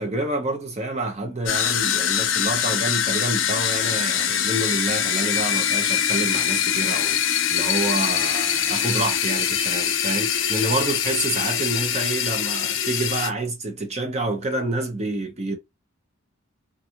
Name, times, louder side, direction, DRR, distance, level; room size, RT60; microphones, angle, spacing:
voice 1, 0.0-15.6, right 2 dB, 35° right, 0.8 m, -28 dB
sound 1, 1.5-13.3, left 9 dB, 65° left, 0.5 m, -23 dB
2.6 x 2.4 x 2.9 m
head